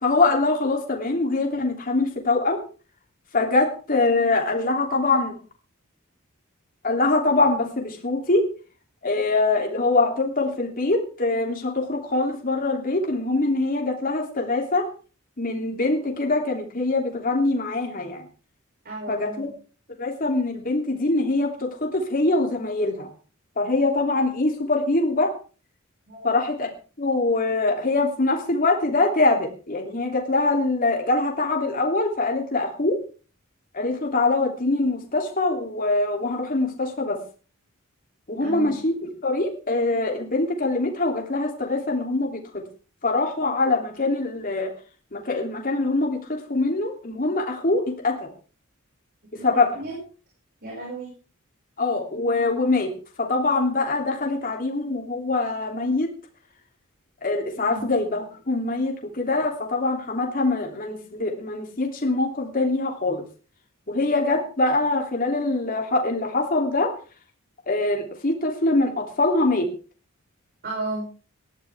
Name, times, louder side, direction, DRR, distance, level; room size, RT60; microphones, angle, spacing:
voice 1, 0.0-2.6 3.3-5.3 6.8-8.4 9.0-14.9 15.4-18.2 19.1-19.5 20.0-23.1 23.6-25.3 26.2-26.7 27.0-33.0 33.7-37.2 38.3-38.9 39.2-42.4 43.0-44.7 45.1-48.3 49.4-49.7 51.8-52.9 53.2-56.1 57.2-63.2 63.9-66.9 67.7-69.7, left 2 dB, 40° left, 1 dB, 3.1 m, -23 dB
voice 2, 18.8-19.5 26.1-26.4 38.4-38.7 49.3-50.0 50.6-51.1 57.7-57.9 70.6-71.1, right 2 dB, 50° right, -2 dB, 6.2 m, -33 dB
19.5 x 13.5 x 3.6 m, 0.37 s
head